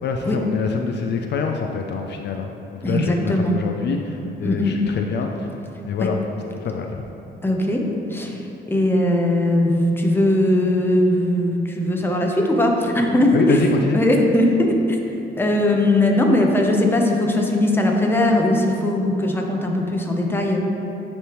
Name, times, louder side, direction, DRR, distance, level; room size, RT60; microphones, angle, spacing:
voice 1, 0.0-2.5 2.9-5.5 5.9-6.2 6.6-7.1 13.3-14.0, left 5 dB, 60° left, 3 dB, 0.4 m, -25 dB
voice 2, 2.8-3.6 4.4-4.7 6.0-6.1 7.4-7.8 8.1-13.6 13.9-15.0 15.4-20.6, left 1 dB, 10° left, 1 dB, 0.7 m, -19 dB
9.8 x 3.3 x 3.0 m, 3.0 s
cardioid pair, 90°, 20 cm